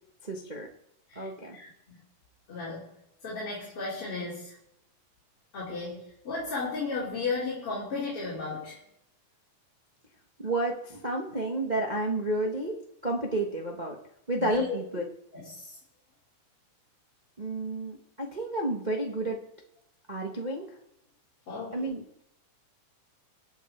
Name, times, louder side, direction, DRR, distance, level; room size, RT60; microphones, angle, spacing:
voice 1, 0.2-0.7 1.1-1.6 10.4-12.8 13.0-14.0 14.3-15.0 17.4-19.4 20.1-20.7 21.7-22.0, right 2 dB, 50° right, 0 dB, 0.5 m, -31 dB
voice 2, 1.1-2.0 2.5-2.9 3.2-4.5 5.5-8.8 14.4-14.8 15.3-15.8 21.5-21.8, left 4 dB, 45° left, -5 dB, 3.8 m, -35 dB
24.0 x 8.0 x 4.5 m, 0.78 s
omnidirectional pair, 3.5 m